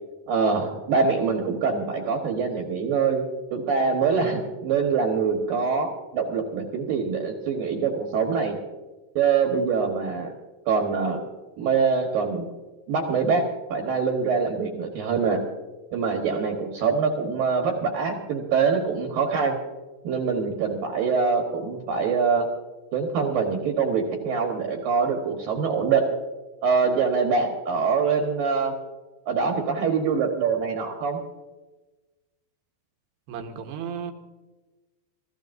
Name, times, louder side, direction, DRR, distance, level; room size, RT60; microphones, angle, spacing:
voice 1, 0.3-3.2 3.5-8.6 9.2-10.3 10.7-11.2 11.6-12.5 12.9-13.4 13.7-15.4 15.9-19.6 20.0-22.5 22.9-26.1 26.6-28.7 29.3-31.2, right 5 dB, 65° right, 1 dB, 2.8 m, -24 dB
voice 2, 33.3-34.1, right 7 dB, 90° right, 4 dB, 3.3 m, -34 dB
27.0 x 15.0 x 2.6 m, 1.2 s
omnidirectional pair, 4.7 m